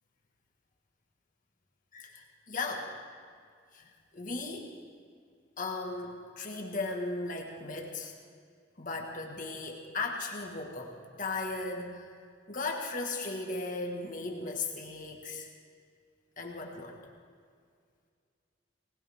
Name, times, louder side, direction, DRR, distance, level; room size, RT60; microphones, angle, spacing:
voice 1, 1.9-2.9 3.7-4.7 5.6-8.1 8.8-12.1 12.5-15.5 16.4-17.0, left 3 dB, 45° left, 1 dB, 1.6 m, -37 dB
19.5 x 19.5 x 3.6 m, 2.1 s
head